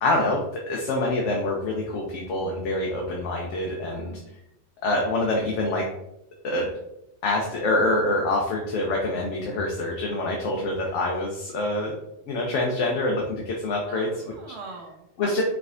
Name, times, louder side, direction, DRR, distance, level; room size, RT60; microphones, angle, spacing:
voice 1, 0.0-4.1 4.8-5.9 6.4-6.7 7.2-11.9 12.3-14.1 15.2-15.4, left 2 dB, 80° left, -1 dB, 1.0 m, -26 dB
voice 2, 13.9-15.4, right 4 dB, 70° right, 2 dB, 1.0 m, -41 dB
4.7 x 3.3 x 2.5 m, 0.84 s
omnidirectional pair, 1.2 m